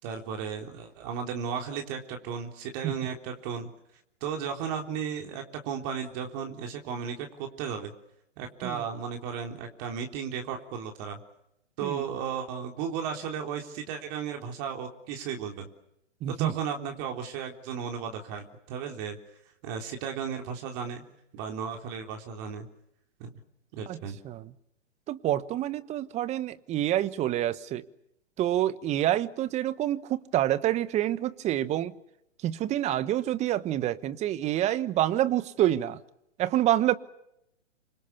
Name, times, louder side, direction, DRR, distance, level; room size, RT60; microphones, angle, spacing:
voice 1, 0.0-3.7 4.2-7.9 8.4-11.2 11.8-15.7 16.3-19.2 19.6-21.0 21.3-22.7 23.2-23.3 23.7-24.2, right 7 dB, 35° right, 4 dB, 3.7 m, -35 dB
voice 2, 16.2-16.5 23.9-24.0 24.2-24.5 25.1-27.8 28.4-31.9 32.4-36.0 36.4-36.9, right 13 dB, 20° right, 16 dB, 1.2 m, -27 dB
27.5 x 25.5 x 7.1 m, 0.79 s
figure-of-eight pair, 125°, 36 cm